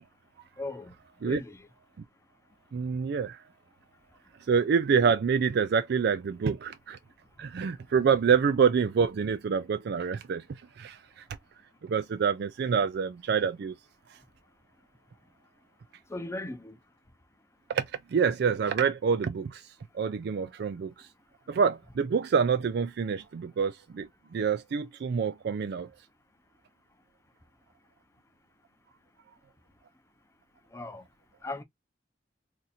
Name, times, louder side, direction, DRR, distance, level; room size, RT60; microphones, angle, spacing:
voice 1, 0.6-0.9 1.2-1.6 16.1-16.8 30.7-31.0 31.4-31.6, left 2 dB, 15° left, 0.6 m, -37 dB
voice 2, 2.7-3.4 4.5-7.0 7.4-11.2 11.8-13.7 14.1-14.2 17.7-19.7 19.9-21.1 21.5-25.9, right 6 dB, 55° right, 0.3 m, -27 dB
2.6 x 2.5 x 4.1 m
head